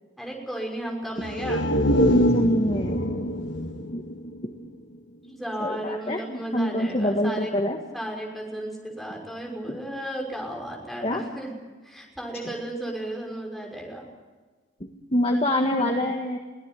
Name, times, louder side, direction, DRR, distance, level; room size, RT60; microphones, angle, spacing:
voice 1, 0.2-1.6 5.3-7.5 7.9-11.5 11.8-14.0, right 1 dB, ahead, -1 dB, 6.0 m, -34 dB
sound 1, 1.2-5.0 5.3-5.4, equal, 65° left, 1.9 m, -24 dB
voice 2, 2.3-3.1 3.9-4.1 4.4-4.5 5.6-7.8 9.7-9.8 11.0-11.2 12.4-12.5 15.1-16.4, left 1 dB, 30° left, 2 dB, 1.7 m, -25 dB
23.5 x 17.0 x 9.2 m, 1.4 s
head